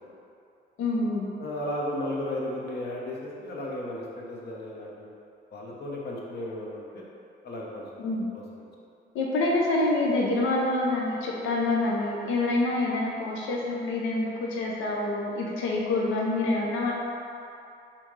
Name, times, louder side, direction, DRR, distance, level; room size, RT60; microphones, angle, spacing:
voice 1, 0.8-1.3 8.0-8.3 9.1-16.9, left 2 dB, 85° left, -2 dB, 0.6 m, -26 dB
voice 2, 1.4-5.1 5.5-7.0 7.4-8.7, left 1 dB, 55° left, -3 dB, 0.9 m, -35 dB
4.3 x 3.6 x 3.1 m, 2.5 s
cardioid pair, 90°, 20 cm